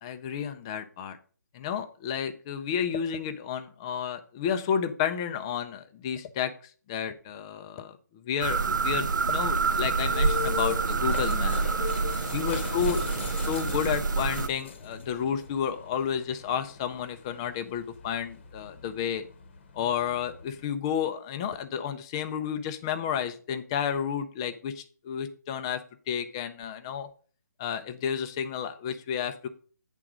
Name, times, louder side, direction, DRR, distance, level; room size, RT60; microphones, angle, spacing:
voice 1, 0.0-1.2 1.5-11.6 12.3-13.0 13.5-19.2 19.7-25.8 26.1-27.1 27.6-29.5, left 8 dB, 15° left, 8 dB, 0.3 m, -31 dB
sound 1, 8.4-14.5, right 4 dB, 85° right, 0.5 m, -27 dB
sound 2, 9.2-20.6, left 7 dB, 35° left, 0.8 m, -40 dB
8.9 x 3.7 x 5.9 m, 0.41 s
hypercardioid pair, 165°, 10 cm